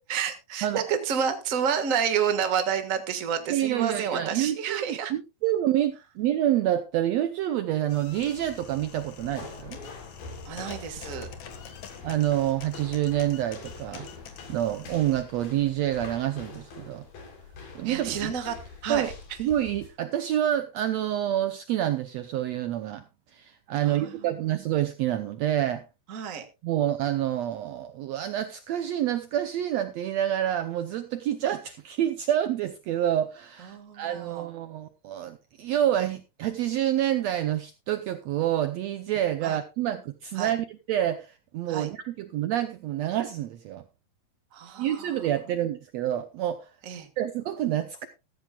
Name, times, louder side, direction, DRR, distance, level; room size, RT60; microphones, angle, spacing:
voice 1, 0.1-5.1 10.4-11.3 17.8-18.5 18.8-19.1 23.8-24.1 26.1-26.4 33.7-34.5 39.4-39.6 40.4-40.5 41.7-41.9 44.5-45.1 46.8-47.1, right 7 dB, 40° right, 7 dB, 1.1 m, -29 dB
voice 2, 3.5-9.8 12.0-14.1 14.5-17.0 17.7-18.3 18.9-19.1 19.4-23.0 23.3-25.8 26.6-43.8 44.8-46.7 47.2-48.1, right 12 dB, 85° right, 10 dB, 1.5 m, -28 dB
sound 1, 7.9-15.2, left 7 dB, 60° left, 2.6 m, -46 dB
sound 2, 9.2-19.9, left 4 dB, 80° left, 5.0 m, -45 dB
15.0 x 14.0 x 2.3 m, 0.27 s
omnidirectional pair, 4.0 m